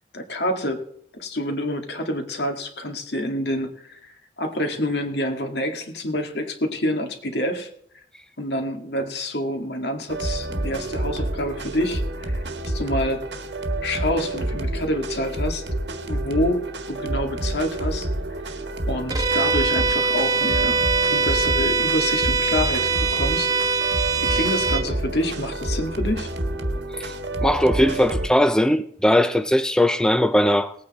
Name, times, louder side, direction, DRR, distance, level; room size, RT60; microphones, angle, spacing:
voice 1, 0.1-0.8 1.1-4.1 4.4-7.7 8.4-12.4 12.7-13.2 13.8-15.6 16.1-18.1 18.5-18.6 18.9-24.0 24.3-26.3, left 1 dB, 65° left, 2.0 m, -27 dB
sound 1, 10.1-28.3, right 1 dB, 80° right, 1.5 m, -28 dB
Bowed string instrument, 19.1-24.9, right 4 dB, 20° right, 1.1 m, -22 dB
voice 2, 27.4-30.7, left 1 dB, 5° left, 0.4 m, -19 dB
19.0 x 8.7 x 4.2 m
head